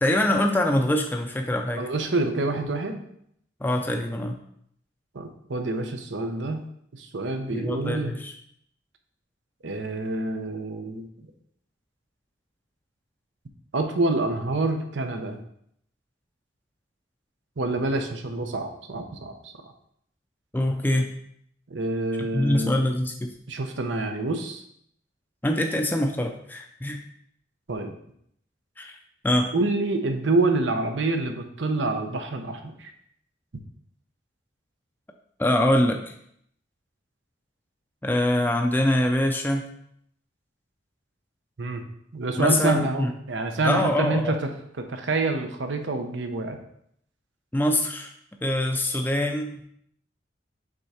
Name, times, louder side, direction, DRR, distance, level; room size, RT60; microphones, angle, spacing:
voice 1, 0.0-1.9 3.6-4.4 7.5-8.3 20.5-21.1 22.3-23.3 25.4-27.0 28.8-29.0 29.2-29.5 35.4-36.1 38.0-39.7 42.4-43.1 43.6-44.4 47.5-48.1 48.4-49.6, left 1 dB, 10° left, 3 dB, 0.4 m, -24 dB
voice 2, 1.8-3.0 5.1-6.6 7.0-8.1 9.6-11.1 13.7-15.4 17.6-19.7 21.7-22.8 23.5-24.6 27.7-27.9 29.5-32.9 41.6-41.8 42.1-44.4 44.8-46.6, right 2 dB, 85° right, 5 dB, 0.8 m, -27 dB
6.4 x 3.6 x 4.3 m, 0.70 s
head